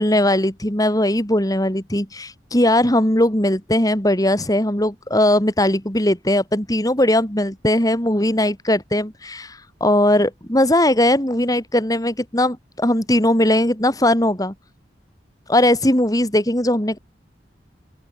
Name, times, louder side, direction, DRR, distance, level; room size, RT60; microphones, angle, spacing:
voice 1, 0.0-14.5 15.5-17.0, left 1 dB, 20° left, 3.7 m, -19 dB
open air
head